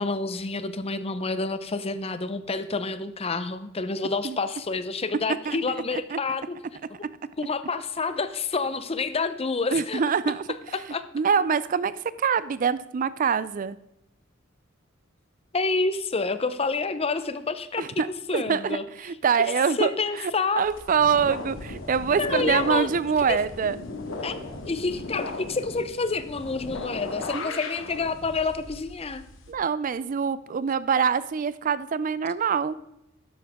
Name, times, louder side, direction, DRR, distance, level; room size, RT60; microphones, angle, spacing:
voice 1, 0.0-6.6 6.9-7.1 7.4-10.0 10.7-11.0 15.5-18.8 19.4-20.7 22.2-22.9 23.3-23.4 24.2-29.2, left 4 dB, 30° left, 12 dB, 0.7 m, -28 dB
voice 2, 9.7-10.4 11.1-11.9 12.2-13.8 17.8-18.1 18.3-19.9 20.2-23.8 27.3-27.6 29.5-32.8, right 6 dB, 40° right, 17 dB, 0.4 m, -25 dB
sound 1, 20.6-29.5, left 2 dB, 90° left, 1.9 m, -37 dB
12.5 x 10.5 x 3.6 m, 0.85 s
head